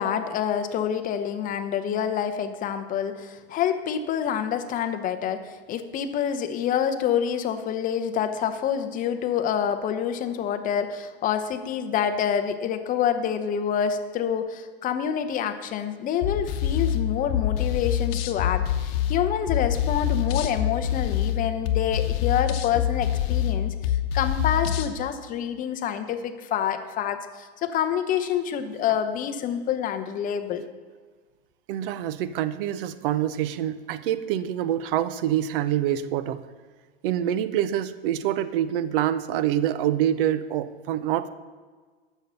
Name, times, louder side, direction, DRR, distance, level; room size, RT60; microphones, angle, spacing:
voice 1, 0.0-30.6, left 8 dB, 25° left, 8 dB, 0.7 m, -27 dB
sound 1, 16.2-24.9, left 10 dB, 65° left, 1.0 m, -26 dB
voice 2, 31.7-36.4 37.0-41.3, right 11 dB, 60° right, 14 dB, 0.7 m, -26 dB
9.0 x 6.3 x 6.8 m, 1.5 s
supercardioid pair, 135°, 32 cm